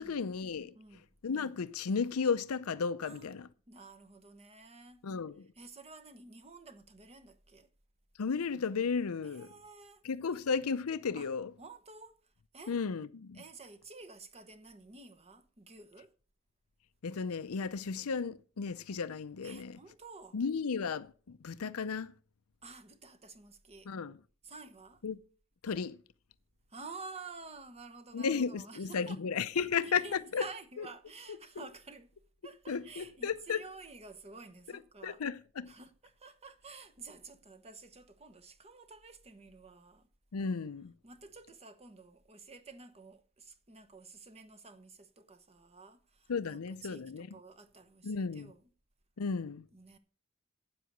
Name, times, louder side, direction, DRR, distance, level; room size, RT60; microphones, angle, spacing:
voice 1, 0.0-0.7 1.2-3.5 5.0-5.5 8.2-9.5 10.0-11.5 12.7-13.4 17.0-19.8 20.3-22.1 23.9-24.2 25.0-25.2 25.6-26.0 28.1-30.4 31.6-31.7 32.7-33.6 35.0-35.7 40.3-40.9 46.3-47.3 48.0-48.5 49.2-49.6, left 5 dB, 80° left, 0.6 m, -34 dB
voice 2, 0.7-1.1 3.0-3.4 3.7-5.0 5.5-7.7 9.2-10.0 11.1-11.3 11.6-12.8 13.3-16.1 19.4-20.4 22.6-23.9 24.4-25.0 26.7-29.2 29.5-32.1 32.4-35.2 35.7-40.1 41.0-48.6 49.7-50.0, right 3 dB, 30° right, 1.0 m, -51 dB
9.0 x 7.7 x 6.6 m
head